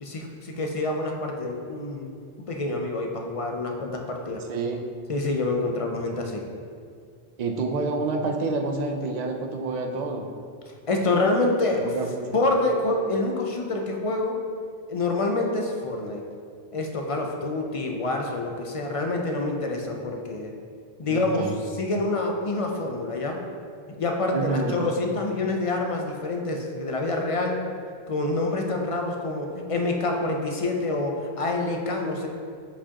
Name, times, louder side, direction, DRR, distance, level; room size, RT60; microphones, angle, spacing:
voice 1, 0.0-2.1 2.4-4.4 5.1-6.4 10.9-11.9 12.3-14.4 14.9-16.2 16.7-20.5 21.0-23.4 24.0-27.6 28.1-32.3, left 2 dB, 45° left, 2 dB, 0.5 m, -27 dB
voice 2, 4.5-4.8 7.4-10.2 11.8-12.4 21.0-21.5 24.3-24.7, right 3 dB, 50° right, 2 dB, 0.6 m, -28 dB
7.1 x 4.6 x 2.9 m, 2.2 s
omnidirectional pair, 1.0 m